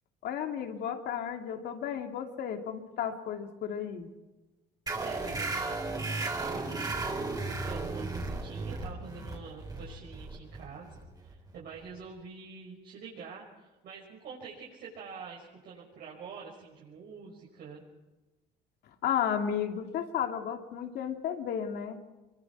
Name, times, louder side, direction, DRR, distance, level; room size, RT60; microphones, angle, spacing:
voice 1, 0.2-4.1 19.0-22.0, left 8 dB, 75° left, 4 dB, 2.8 m, -33 dB
sound 1, 4.9-12.0, right 3 dB, 20° right, 4.0 m, -35 dB
voice 2, 4.9-17.8, right 5 dB, 70° right, -4 dB, 5.7 m, -46 dB
24.0 x 23.0 x 4.8 m, 1.1 s
cardioid pair, 110°, 17 cm